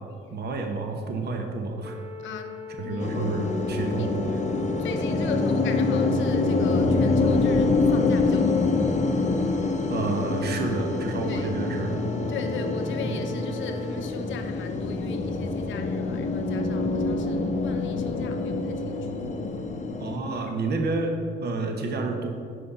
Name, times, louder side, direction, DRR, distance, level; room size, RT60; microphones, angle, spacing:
voice 1, 0.3-2.0 2.8-4.4 9.9-12.1 13.1-13.2 20.0-21.1 21.4-22.3, right 3 dB, 55° right, 3 dB, 1.0 m, -29 dB
sound 1, 1.8-14.0, left 3 dB, 5° right, 0.8 m, -42 dB
voice 2, 2.2-3.2 3.8-4.1 4.8-8.9 11.2-11.5 12.3-19.3, left 4 dB, 75° left, 6 dB, 0.8 m, -37 dB
sound 2, 3.0-20.2, left 3 dB, 35° left, 0.7 m, -26 dB
6.2 x 5.5 x 5.8 m, 2.3 s
cardioid pair, 90°, 20 cm